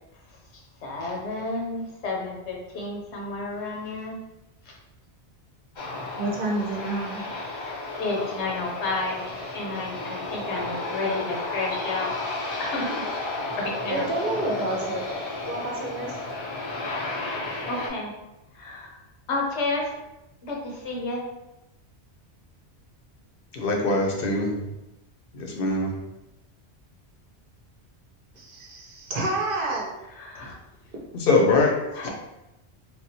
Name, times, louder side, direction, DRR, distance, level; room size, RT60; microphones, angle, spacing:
voice 1, 0.8-4.2 4.7-4.8 8.0-12.1 12.6-12.9 13.5-14.1 17.7-18.1 18.5-19.0 19.3-19.9 20.4-21.2 30.2-30.6 31.9-32.1, left 2 dB, 85° left, -2 dB, 1.1 m, -31 dB
Aircraft, 5.8-17.9, left 2 dB, 45° left, 0.4 m, -33 dB
voice 2, 6.2-7.2 13.9-15.0 15.5-16.2 28.3-29.9, right 2 dB, 60° right, -2 dB, 0.8 m, -29 dB
voice 3, 23.5-24.5 25.3-25.9 31.3-31.7, left 3 dB, 60° left, 1 dB, 0.8 m, -22 dB
3.5 x 2.2 x 2.7 m, 0.94 s
omnidirectional pair, 1.1 m